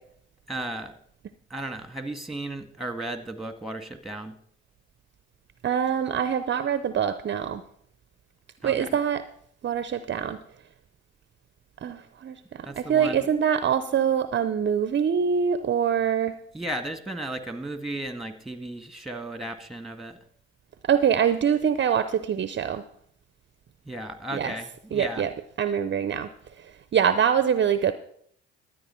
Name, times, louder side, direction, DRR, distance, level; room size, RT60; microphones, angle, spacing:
voice 1, 0.5-0.9 1.5-4.4 8.6-9.0 12.6-13.3 16.5-20.2 23.8-25.3, right 1 dB, ahead, 8 dB, 1.7 m, -35 dB
voice 2, 5.6-7.6 8.6-9.2 9.6-10.4 11.8-16.4 20.8-22.8 24.3-24.5 24.9-25.3 25.6-26.3 26.9-27.9, right 8 dB, 40° right, 12 dB, 0.6 m, -24 dB
12.5 x 9.3 x 4.4 m, 0.66 s
hypercardioid pair, 55°, 30 cm